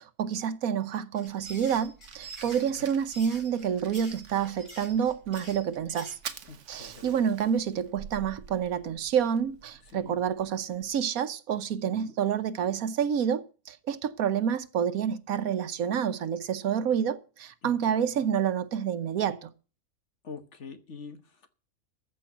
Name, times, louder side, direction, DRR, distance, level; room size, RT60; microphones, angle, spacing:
voice 1, 0.0-6.1 6.7-19.5, right 8 dB, 80° right, 1.4 m, -28 dB
sound 1, 1.1-6.2, right 1 dB, 20° left, 4.3 m, -46 dB
Fire, 1.3-11.0, right 7 dB, 60° right, 1.2 m, -48 dB
voice 2, 2.4-2.9 6.5-7.2 9.9-10.2 11.8-12.1 17.6-18.1 20.2-21.5, left 5 dB, 55° left, 1.6 m, -46 dB
14.5 x 5.4 x 9.0 m
omnidirectional pair, 1.5 m